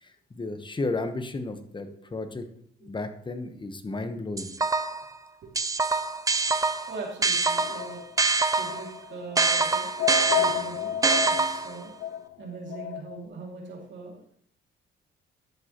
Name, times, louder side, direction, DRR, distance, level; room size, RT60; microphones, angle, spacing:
voice 1, 0.0-2.5 2.8-4.5, left 2 dB, 25° left, 8 dB, 1.1 m, -33 dB
voice 2, 1.9-2.2 3.9-4.0 6.9-8.0 8.5-9.9 10.3-10.9 11.2-11.9 12.4-14.2, right 3 dB, 70° right, -2 dB, 2.6 m, -41 dB
sound 1, 4.4-5.1 5.6-8.9 9.4-11.8, right 3 dB, 15° right, 0.6 m, -25 dB
sound 2, 7.6-13.2, left 12 dB, 70° left, 0.5 m, -32 dB
10.5 x 7.6 x 3.0 m, 0.64 s
cardioid pair, 90°, 20 cm